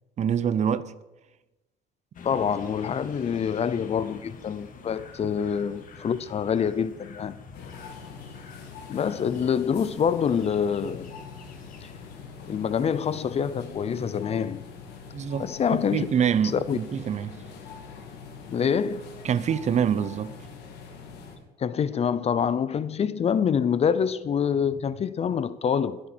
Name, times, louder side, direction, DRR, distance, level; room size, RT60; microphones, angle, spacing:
voice 1, 0.2-0.9 15.1-15.5 15.9-17.4 19.2-20.3, right 8 dB, 45° right, 0.7 m, -25 dB
sound 1, 2.1-12.3, left 5 dB, 55° left, 2.1 m, -47 dB
voice 2, 2.2-7.4 8.9-11.1 11.8-11.9 12.5-14.6 15.4-16.1 16.5-16.8 18.5-19.0 21.6-26.0, left 7 dB, 40° left, 0.6 m, -26 dB
sound 2, 7.5-21.4, left 5 dB, 80° left, 2.6 m, -44 dB
22.0 x 8.8 x 4.5 m
cardioid pair, 110°, 17 cm